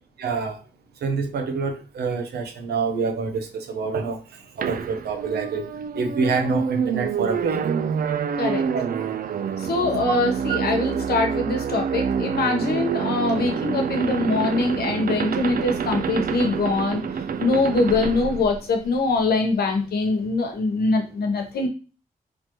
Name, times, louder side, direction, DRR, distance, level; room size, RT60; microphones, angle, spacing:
voice 1, 0.2-0.6 1.0-4.2 4.6-5.7 6.0-7.7 8.7-8.8 10.1-10.2 10.5-10.6, right 4 dB, 90° right, 5 dB, 0.8 m, -26 dB
sound 1, 4.6-19.2, right 7 dB, 65° right, 0.4 m, -27 dB
voice 2, 9.7-17.0 17.4-21.7, left 3 dB, 80° left, 4 dB, 1.0 m, -23 dB
4.3 x 3.1 x 3.0 m, 0.34 s
cardioid pair, 50°, 16 cm